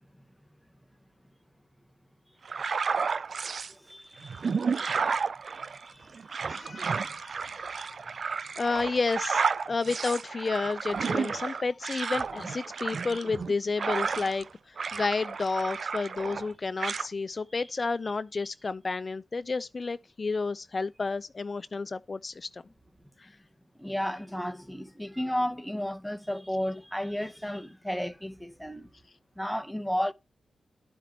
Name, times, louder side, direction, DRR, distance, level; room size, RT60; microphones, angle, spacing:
sound 1, 2.5-3.7 4.2-14.5 14.8-16.5 16.8-17.1, right 5 dB, 60° right, 0.4 m, -32 dB
voice 1, 3.7-4.7 5.0-6.5 7.0-7.2 23.8-28.9 29.4-30.1, equal, ahead, 0.8 m, -34 dB
voice 2, 6.5-7.5 7.9-8.0 8.2-14.5 14.9-22.6 23.2-23.3, left 4 dB, 45° left, 0.3 m, -31 dB
11.0 x 5.0 x 4.3 m
cardioid pair, 55°, 0 cm